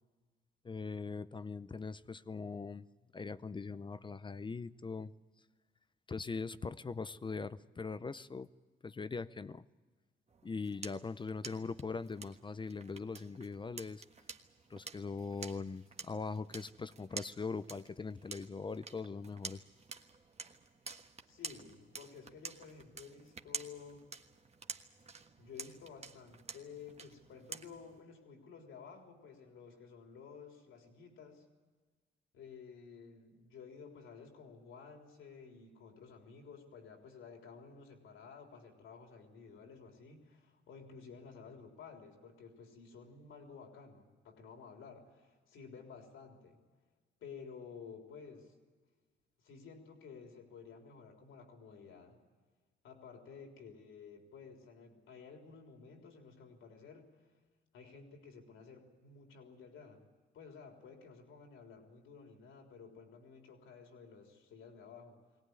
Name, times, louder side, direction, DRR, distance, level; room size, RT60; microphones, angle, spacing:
voice 1, 0.6-2.9 3.1-5.1 6.1-8.5 8.8-9.7 10.4-14.0 14.7-19.6, left 4 dB, 25° left, 15 dB, 0.6 m, -41 dB
sound 1, 10.3-28.0, right 4 dB, 35° right, 1.4 m, -50 dB
voice 2, 21.3-24.1 25.4-31.4 32.3-46.6 47.2-48.6 49.4-52.2 52.8-57.3 57.7-60.1 60.3-65.2, left 5 dB, 80° left, 2 dB, 3.7 m, -53 dB
21.0 x 18.0 x 9.6 m, 1.4 s
cardioid pair, 90°, 20 cm